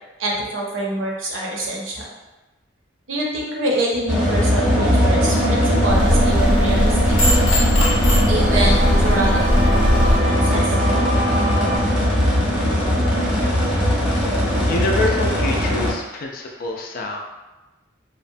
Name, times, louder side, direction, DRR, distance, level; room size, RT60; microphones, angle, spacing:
voice 1, 0.2-2.0 3.1-7.2 8.2-9.9 10.2-10.7, right 1 dB, 75° right, -3 dB, 0.6 m, -25 dB
sound 1, 4.1-15.9, equal, 5° right, 0.7 m, -19 dB
sound 2, 4.7-11.8, right 1 dB, 35° right, 0.4 m, -27 dB
sound 3, 5.9-10.2, equal, 85° left, 0.7 m, -19 dB
voice 2, 14.1-17.2, left 2 dB, 45° left, 1 dB, 0.4 m, -26 dB
2.8 x 2.1 x 2.6 m, 1.1 s
head